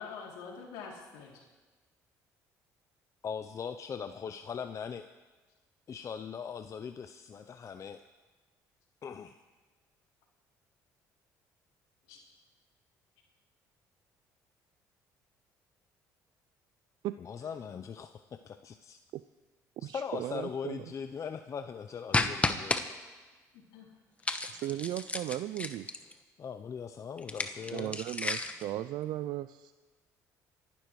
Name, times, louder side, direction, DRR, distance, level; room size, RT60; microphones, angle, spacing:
voice 1, 0.0-1.4 12.1-12.2 23.5-23.9 24.2-24.4, left 5 dB, 85° left, -1 dB, 3.0 m, -46 dB
voice 2, 3.2-5.1 5.9-8.0 9.0-9.3 17.2-18.1 18.4-19.0 19.8-22.9 26.4-28.0, left 6 dB, 45° left, 8 dB, 0.6 m, -40 dB
voice 3, 19.8-20.9 24.5-25.9 27.7-29.7, right 14 dB, 70° right, 13 dB, 0.4 m, -36 dB
sound 1, 22.1-22.8 24.2-26.1 27.2-28.6, left 2 dB, 15° left, 1.2 m, -32 dB
26.5 x 11.5 x 3.2 m, 1.3 s
supercardioid pair, 70°, 8 cm